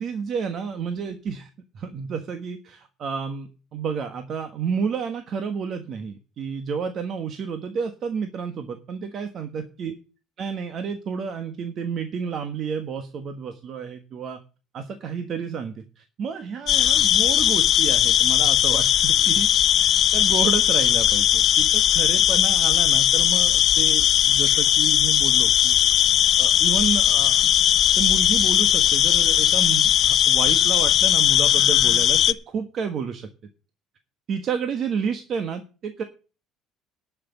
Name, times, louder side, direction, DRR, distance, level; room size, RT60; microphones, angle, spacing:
voice 1, 0.0-10.0 10.4-14.4 14.7-19.5 19.7-26.1 26.4-27.5 28.0-33.3 34.3-36.0, right 6 dB, 45° right, 8 dB, 1.4 m, -30 dB
sound 1, 16.7-32.3, left 11 dB, 50° left, 0.7 m, -18 dB
11.0 x 6.0 x 8.4 m, 0.35 s
cardioid pair, 120°, 0 cm